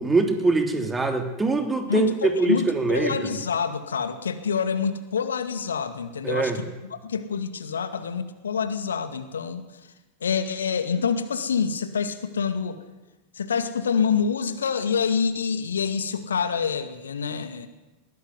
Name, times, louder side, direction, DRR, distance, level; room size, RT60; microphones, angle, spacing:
voice 1, 0.0-3.3 6.2-6.6, right 3 dB, 15° right, 6 dB, 3.1 m, -23 dB
voice 2, 1.9-9.6 10.2-12.8 13.4-17.7, left 6 dB, 70° left, 10 dB, 2.1 m, -27 dB
21.0 x 20.5 x 9.6 m, 1.1 s
figure-of-eight pair, 90°, 0 cm